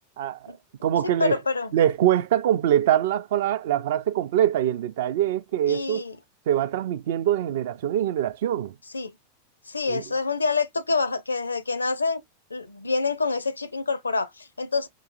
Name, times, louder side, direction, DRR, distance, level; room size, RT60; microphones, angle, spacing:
voice 1, 0.2-0.6 0.8-1.4 1.7-6.0 6.5-8.7 9.9-10.0, right 11 dB, 55° right, 0.4 m, -23 dB
voice 2, 1.2-1.7 5.7-6.2 8.9-9.1 9.7-12.2 12.5-14.9, left 4 dB, 80° left, 0.5 m, -26 dB
4.7 x 2.9 x 2.4 m
figure-of-eight pair, 90°, 0 cm